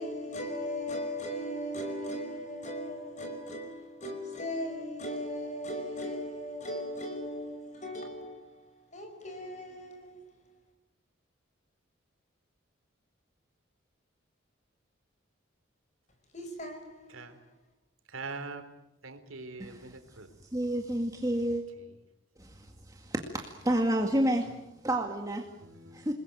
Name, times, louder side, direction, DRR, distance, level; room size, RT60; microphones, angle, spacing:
voice 1, 0.0-10.3 16.3-17.4, equal, 35° left, 5.4 m, -38 dB
voice 2, 18.1-18.6 19.0-20.3 25.6-26.1, right 3 dB, 85° right, 3.7 m, -42 dB
voice 3, 19.6-21.7 22.4-25.6 25.9-26.1, right 1 dB, 15° right, 2.0 m, -31 dB
28.5 x 21.0 x 9.1 m
head